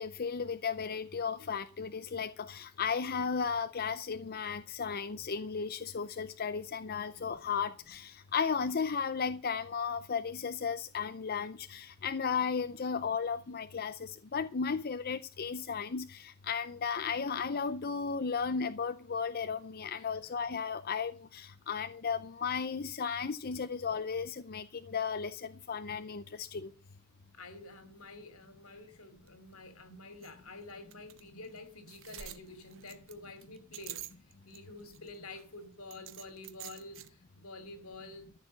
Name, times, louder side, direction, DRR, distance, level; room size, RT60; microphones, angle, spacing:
voice 1, 0.0-26.7, left 6 dB, 45° left, 0.6 m, -35 dB
voice 2, 27.3-38.3, left 2 dB, 80° left, 2.8 m, -49 dB
sound 1, 29.3-29.4 29.6-29.7 30.2-30.3 30.9-31.2 31.6-31.7 31.9-34.6 34.9-35.4 35.9-37.1, right 11 dB, 60° right, 1.0 m, -47 dB
13.5 x 6.7 x 7.4 m
head